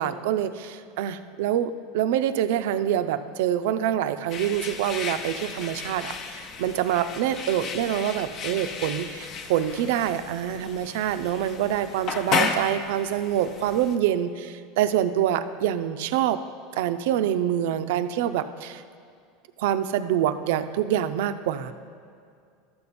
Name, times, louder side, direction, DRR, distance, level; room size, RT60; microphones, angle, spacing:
voice 1, 0.0-16.4 16.7-18.8 19.6-21.7, right 10 dB, 75° right, 11 dB, 0.4 m, -26 dB
sound 1, 4.3-14.0, left 5 dB, 40° left, 0.7 m, -33 dB
12.5 x 6.9 x 4.2 m, 2.3 s
supercardioid pair, 135°, 0 cm